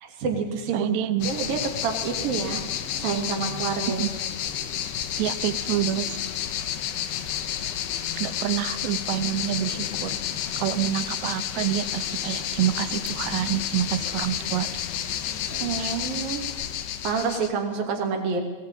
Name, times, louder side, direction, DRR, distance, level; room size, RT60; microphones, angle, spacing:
voice 1, 0.0-0.9 1.2-4.1 15.6-16.5 17.0-18.4, right 5 dB, 60° right, 2 dB, 4.4 m, -28 dB
voice 2, 0.7-1.3 4.0-4.1 5.2-6.2 8.2-10.1 10.6-14.7 15.8-15.9, right 12 dB, 90° right, 13 dB, 3.2 m, -27 dB
sound 1, 1.2-17.5, left 10 dB, 85° left, 3.3 m, -31 dB
20.5 x 19.0 x 9.0 m, 1.2 s
omnidirectional pair, 4.8 m